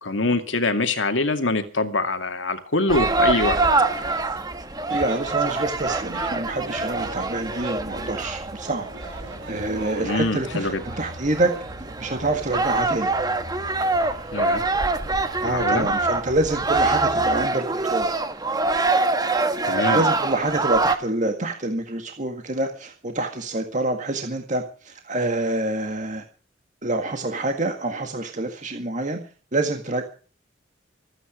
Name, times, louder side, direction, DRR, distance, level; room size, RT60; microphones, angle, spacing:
voice 1, 0.0-3.6 10.0-10.8 14.3-14.6 15.5-15.9 19.6-20.0, left 2 dB, 75° left, 7 dB, 2.3 m, -24 dB
sound 1, 2.9-21.0, right 3 dB, 20° right, 1.2 m, -25 dB
sound 2, 3.7-17.5, right 2 dB, 80° right, 4.1 m, -40 dB
voice 2, 4.9-8.9 9.5-11.5 12.0-13.1 15.4-18.2 19.9-26.2 26.8-29.2 29.5-30.0, right 2 dB, 40° right, 5 dB, 1.8 m, -26 dB
25.5 x 9.2 x 5.0 m, 0.39 s
head